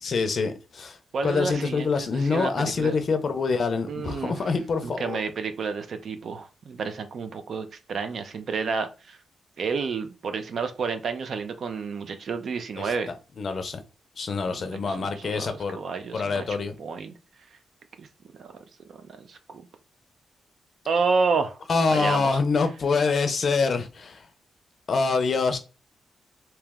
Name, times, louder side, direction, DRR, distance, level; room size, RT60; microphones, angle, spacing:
voice 1, 0.0-1.0 1.2-5.2 12.8-12.9 13.4-13.8 14.2-15.8 16.1-16.8 21.7-24.2 24.9-25.6, left 4 dB, 45° left, 0.5 m, -25 dB
voice 2, 1.1-3.0 3.9-4.3 4.8-9.2 9.6-13.1 14.5-16.5 16.8-17.1 18.0-18.1 18.3-18.5 19.2-19.6 20.9-21.6 21.9-22.4, right 5 dB, 55° right, 0.5 m, -30 dB
3.0 x 2.9 x 3.5 m
wide cardioid pair, 175°, 0 cm